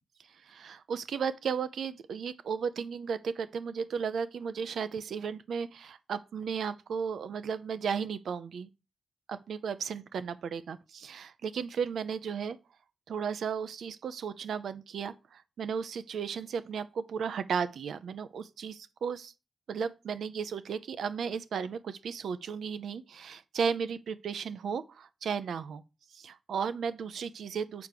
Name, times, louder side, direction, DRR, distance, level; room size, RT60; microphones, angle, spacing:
voice 1, 0.4-8.7 9.3-12.6 13.1-19.3 19.7-25.8 26.1-27.9, right 6 dB, 80° right, 0.6 m, -35 dB
7.0 x 4.6 x 6.7 m
supercardioid pair, 45°, 0 cm